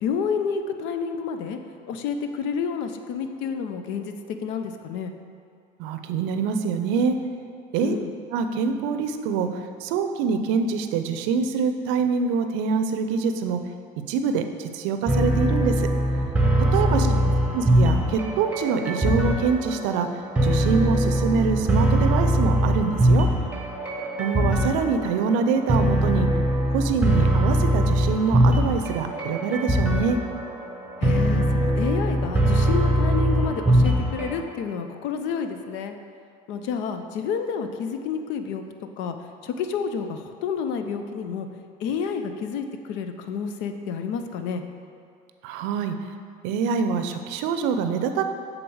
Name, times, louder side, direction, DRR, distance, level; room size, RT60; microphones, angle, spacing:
voice 1, 0.0-1.6 1.9-5.1 7.8-8.1 16.9-17.6 31.0-35.9 36.5-38.6 39.0-39.2 39.4-41.5 41.8-44.7, left 6 dB, 75° left, 7 dB, 0.6 m, -29 dB
voice 2, 5.8-7.2 7.7-8.0 8.3-13.6 14.1-15.9 16.7-17.1 17.5-20.1 20.4-23.3 24.2-26.3 26.7-30.2 45.4-46.0 46.4-48.2, right 5 dB, 80° right, 7 dB, 0.5 m, -25 dB
sound 1, 15.1-34.4, right 1 dB, 5° right, 1.1 m, -22 dB
7.7 x 3.8 x 4.7 m, 2.3 s
supercardioid pair, 90°, 19 cm